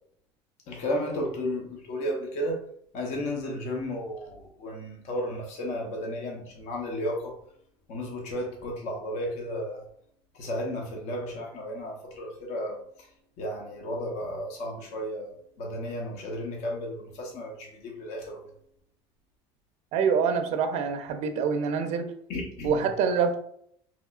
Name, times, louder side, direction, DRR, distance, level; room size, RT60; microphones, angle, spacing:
voice 1, 0.7-2.7 2.9-7.4 7.9-9.8 10.3-13.1 13.4-15.3 15.6-18.4 22.3-22.8, left 1 dB, 65° left, 0 dB, 0.9 m, -33 dB
voice 2, 19.9-22.1 22.6-23.4, right 6 dB, 65° right, 7 dB, 0.5 m, -25 dB
3.7 x 3.0 x 2.3 m, 0.67 s
supercardioid pair, 100°, 12 cm